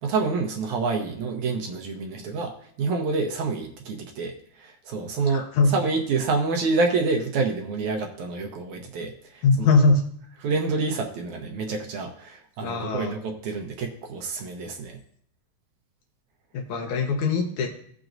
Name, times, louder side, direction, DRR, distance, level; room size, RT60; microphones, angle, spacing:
voice 1, 0.0-2.5 2.8-5.5 5.7-9.4 10.4-15.0, right 4 dB, 70° right, 3 dB, 2.0 m, -27 dB
voice 2, 5.3-5.7 9.4-10.0 12.6-13.2 16.5-17.7, left 4 dB, 70° left, 2 dB, 2.1 m, -21 dB
17.0 x 6.0 x 2.6 m, 0.64 s
omnidirectional pair, 4.0 m